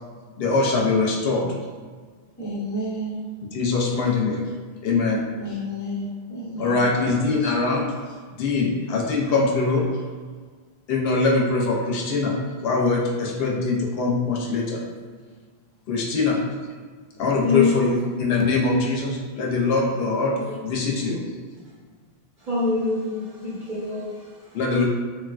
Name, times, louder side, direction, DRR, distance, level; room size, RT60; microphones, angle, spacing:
voice 1, 0.4-1.5 3.5-4.4 4.8-5.2 6.6-7.8 8.4-9.9 10.9-12.3 12.6-14.8 15.9-16.4 17.2-20.3 20.6-21.2 24.5-24.9, left 3 dB, 75° left, -1 dB, 0.8 m, -22 dB
voice 2, 2.4-3.2 5.4-7.9, equal, 25° left, -5 dB, 0.5 m, -31 dB
voice 3, 17.4-17.7 20.3-20.5 22.4-24.6, left 4 dB, 55° right, -9 dB, 0.9 m, -25 dB
3.5 x 2.3 x 2.3 m, 1.5 s
omnidirectional pair, 1.0 m